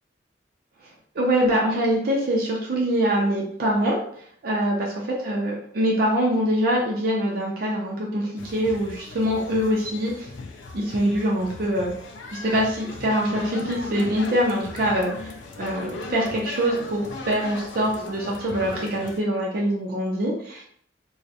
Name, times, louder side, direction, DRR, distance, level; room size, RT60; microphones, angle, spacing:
voice 1, 1.2-4.0 4.4-4.9 5.2-10.3 10.7-11.9 12.3-20.6, equal, 55° right, -3 dB, 0.4 m, -24 dB
sound 1, 8.4-19.2, left 3 dB, 80° left, 0.3 m, -37 dB
2.3 x 2.0 x 2.7 m, 0.63 s
head